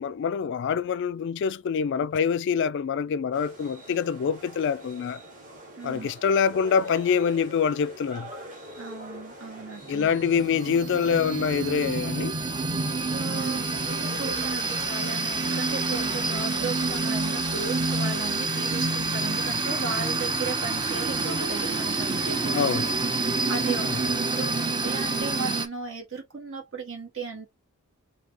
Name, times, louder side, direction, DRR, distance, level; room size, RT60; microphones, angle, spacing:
voice 1, 0.0-5.2 5.8-8.3 9.9-12.3 22.5-22.9 23.8-24.0, left 6 dB, 55° left, 0.3 m, -25 dB
sound 1, 3.3-22.9, right 1 dB, 40° right, 1.5 m, -44 dB
voice 2, 5.8-6.1 8.8-10.1 13.1-22.7 23.1-27.5, right 4 dB, 65° right, 1.9 m, -36 dB
sound 2, 9.8-25.7, right 3 dB, 20° right, 0.6 m, -28 dB
4.8 x 2.8 x 2.8 m
head